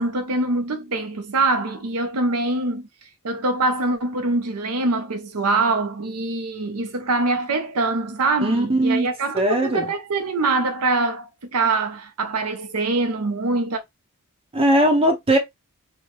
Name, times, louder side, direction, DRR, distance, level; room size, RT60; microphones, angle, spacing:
voice 1, 0.0-2.9 3.2-13.8, right 3 dB, 85° right, 0.8 m, -24 dB
voice 2, 8.4-9.1 9.3-9.9 14.5-15.4, right 1 dB, 25° right, 0.8 m, -19 dB
4.6 x 2.2 x 3.1 m
head